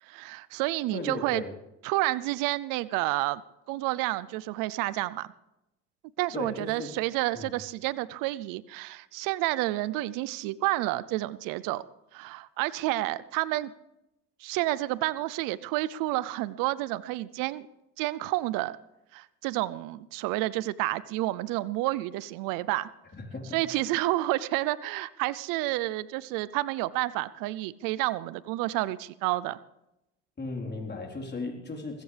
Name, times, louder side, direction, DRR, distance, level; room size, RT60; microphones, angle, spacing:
voice 1, 0.0-1.4 1.8-3.4 3.7-5.3 6.2-11.8 12.1-13.7 14.4-17.7 18.0-18.8 19.1-22.9 23.5-29.6, right 17 dB, 80° right, 19 dB, 0.6 m, -30 dB
voice 2, 0.9-1.5 6.3-7.0 7.3-7.5 23.1-23.8 30.4-32.0, left 3 dB, 30° left, 0 dB, 4.0 m, -36 dB
19.5 x 15.5 x 3.4 m, 0.89 s
supercardioid pair, 75°, 32 cm